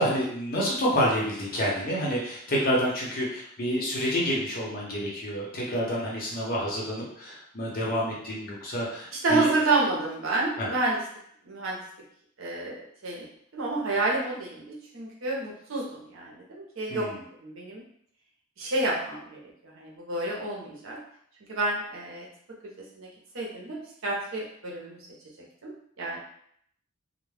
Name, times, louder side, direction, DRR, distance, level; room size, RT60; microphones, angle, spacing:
voice 1, 0.0-9.5 10.6-10.7 16.9-17.2, equal, 45° left, -4 dB, 0.8 m, -28 dB
voice 2, 9.2-11.0 11.4-11.8 12.4-13.2 13.5-17.1 17.4-17.8 18.6-19.4 19.8-21.0 21.5-22.3 23.0-23.1 23.3-25.0 25.6-25.7 26.0-26.2, right 2 dB, 65° right, -3 dB, 0.7 m, -29 dB
2.3 x 2.1 x 3.2 m, 0.67 s
head